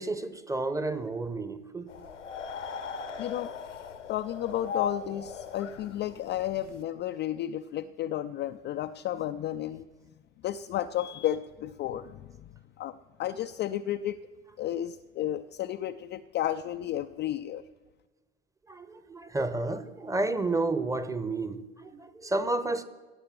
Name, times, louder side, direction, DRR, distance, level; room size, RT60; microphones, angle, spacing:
voice 1, 0.0-2.1 18.7-22.8, right 2 dB, 10° right, 12 dB, 0.9 m, -31 dB
sound 1, 1.9-6.8, left 6 dB, 80° left, 1.0 m, -38 dB
voice 2, 3.2-3.5 4.1-9.9 10.4-12.3 12.8-12.9 13.2-14.2 14.6-17.6, left 12 dB, 30° left, 8 dB, 0.4 m, -32 dB
16.0 x 6.7 x 7.6 m, 1.3 s
figure-of-eight pair, 70°, 36 cm